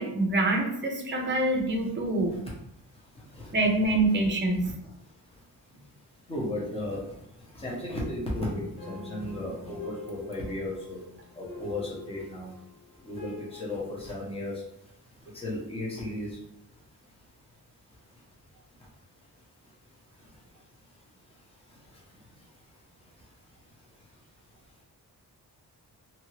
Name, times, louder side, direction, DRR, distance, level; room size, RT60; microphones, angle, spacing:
voice 1, 0.0-2.5 3.5-4.7, right 2 dB, 30° right, 2 dB, 0.6 m, -26 dB
voice 2, 6.3-7.0 7.5-11.0 11.4-12.5 13.1-14.5 15.3-16.3, left 1 dB, 15° left, -5 dB, 0.9 m, -34 dB
sound 1, 8.8-13.8, left 4 dB, 55° left, 1.3 m, -46 dB
2.8 x 2.6 x 3.0 m, 0.78 s
wide cardioid pair, 135°, 38 cm